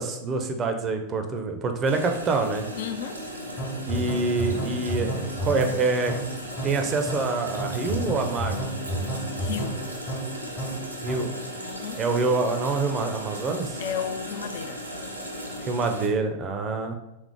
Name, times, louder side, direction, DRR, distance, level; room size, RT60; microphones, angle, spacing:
voice 1, 0.0-2.7 3.9-6.1 6.6-8.6 11.0-11.3 12.0-13.8 15.6-16.9, right 3 dB, 25° right, 5 dB, 0.5 m, -26 dB
sound 1, 1.8-16.1, equal, 85° right, 0.6 m, -37 dB
voice 2, 2.8-3.2 9.4-9.8 11.6-12.0 13.8-14.8, left 8 dB, 55° left, 8 dB, 0.3 m, -33 dB
sound 2, 3.6-11.4, right 1 dB, 30° left, 0.7 m, -31 dB
3.5 x 3.2 x 3.5 m, 0.91 s
figure-of-eight pair, 90°, 0 cm